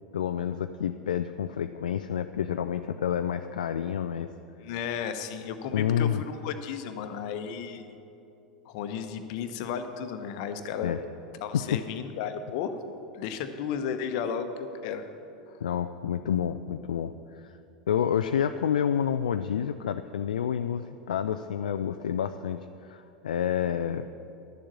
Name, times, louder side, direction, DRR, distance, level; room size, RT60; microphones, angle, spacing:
voice 1, 0.1-4.3 5.7-6.2 10.8-11.0 11.5-11.8 15.6-17.6 17.9-24.1, left 8 dB, 70° left, 9 dB, 0.3 m, -29 dB
voice 2, 4.6-7.9 8.6-11.0 11.4-12.7 13.1-15.1 15.5-15.6, left 7 dB, 55° left, 8 dB, 0.9 m, -34 dB
11.5 x 7.3 x 7.4 m, 2.8 s
figure-of-eight pair, 85°, 4 cm